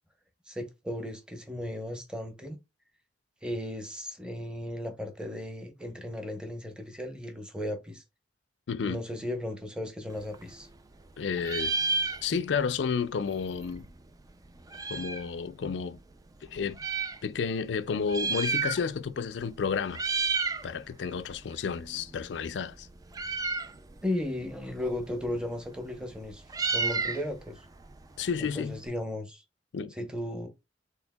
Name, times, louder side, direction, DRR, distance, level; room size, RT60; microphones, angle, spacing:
voice 1, 0.5-2.6 3.4-8.0 8.9-10.7 24.0-27.6 28.4-29.4 29.9-30.5, left 1 dB, 5° right, 0.8 m, -35 dB
voice 2, 8.7-9.0 11.2-11.8 12.2-13.9 14.9-16.0 16.5-16.8 17.2-20.0 20.6-22.9 28.2-28.8 29.7-29.9, left 6 dB, 75° left, 0.4 m, -31 dB
Meow, 10.1-11.1 11.4-12.7 13.0-13.1 13.2-15.3 16.0-17.2 17.9-19.1 19.4-19.6 19.9-20.7 21.0-28.9, right 4 dB, 20° right, 0.3 m, -33 dB
4.4 x 3.5 x 2.2 m
head